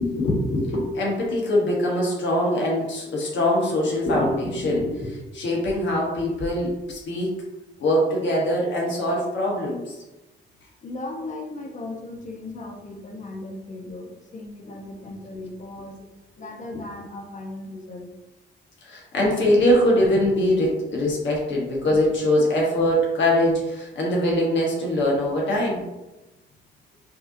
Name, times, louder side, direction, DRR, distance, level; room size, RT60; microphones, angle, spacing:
voice 1, 0.0-7.3 7.8-10.0 18.8-25.8, left 1 dB, 65° left, -2 dB, 1.2 m, -22 dB
voice 2, 10.8-16.0 16.4-18.1, left 2 dB, 40° left, 2 dB, 0.9 m, -37 dB
5.3 x 2.8 x 2.6 m, 1.0 s
cardioid pair, 90°, 20 cm